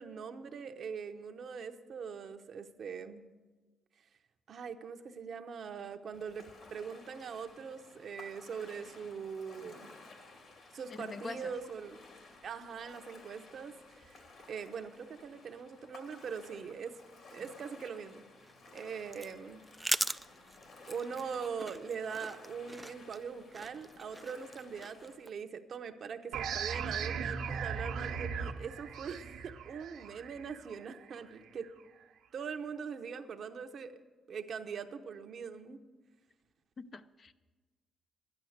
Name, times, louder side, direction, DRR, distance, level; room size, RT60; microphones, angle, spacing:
voice 1, 0.0-3.3 4.5-9.9 10.7-12.0 12.4-14.2 14.5-17.0 17.3-18.2 18.7-19.6 20.8-31.7 32.3-34.0 34.3-35.8, right 6 dB, 60° right, 7 dB, 0.9 m, -42 dB
Ocean, 6.1-25.2, left 3 dB, 60° left, 2.6 m, -56 dB
voice 2, 11.0-11.5 36.8-37.3, left 3 dB, 40° left, 11 dB, 0.5 m, -44 dB
sound 1, 18.4-25.3, right 1 dB, 10° right, 0.3 m, -40 dB
sound 2, 26.3-31.7, right 6 dB, 85° right, 1.1 m, -38 dB
12.0 x 10.5 x 6.5 m, 1.3 s
cardioid pair, 90°, 0 cm